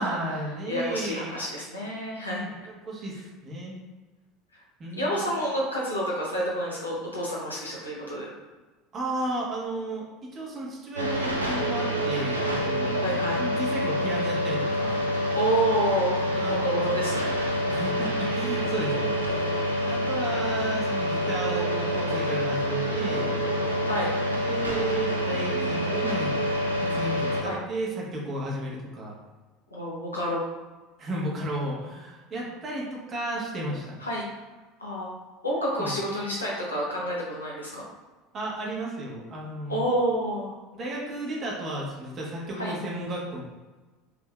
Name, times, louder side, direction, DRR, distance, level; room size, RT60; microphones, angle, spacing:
voice 1, 0.0-1.4 2.8-3.2 3.4-3.7 4.8-5.3 8.9-15.1 16.4-17.0 17.7-19.5 19.8-23.3 24.3-26.3 26.8-29.2 31.0-34.0 35.8-35.9 38.3-39.9 40.8-43.4, right 1 dB, 35° right, -3 dB, 1.3 m, -33 dB
voice 2, 0.7-2.5 4.9-8.3 12.9-13.4 15.3-17.4 23.8-24.1 25.3-26.1 27.4-27.6 29.7-30.4 34.0-34.2 34.8-35.1 35.4-37.8 39.7-40.5 42.5-42.7, right 1 dB, 85° left, -5 dB, 1.1 m, -29 dB
sound 1, 11.0-27.4, equal, 90° right, 0.5 m, -27 dB
4.9 x 3.4 x 2.4 m, 1.2 s
figure-of-eight pair, 70°, 0 cm